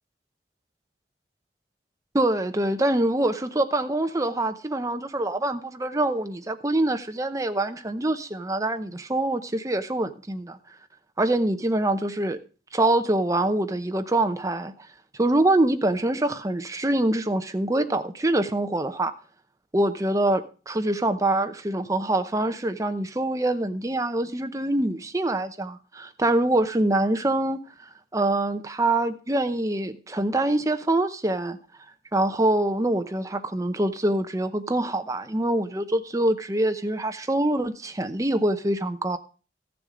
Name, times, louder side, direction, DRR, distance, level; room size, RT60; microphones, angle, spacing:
voice 1, 2.1-10.6 11.2-12.4 12.7-14.7 15.2-19.1 19.7-27.6 28.1-31.6 32.1-39.2, right 1 dB, 20° right, 0.7 m, -25 dB
13.5 x 7.0 x 5.0 m
head